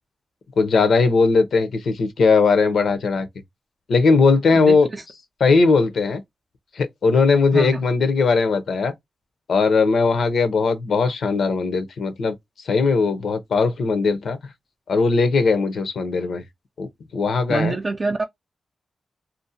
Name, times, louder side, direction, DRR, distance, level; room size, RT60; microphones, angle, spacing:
voice 1, 0.6-3.3 3.9-4.9 5.4-6.2 6.7-8.9 9.5-12.3 12.6-14.4 14.9-16.4 16.8-17.8, left 4 dB, 80° left, 0.6 m, -19 dB
voice 2, 4.5-5.0 7.5-7.8 17.5-18.2, right 3 dB, 40° right, 0.4 m, -25 dB
2.6 x 2.0 x 2.6 m
cardioid pair, 75°, 0 cm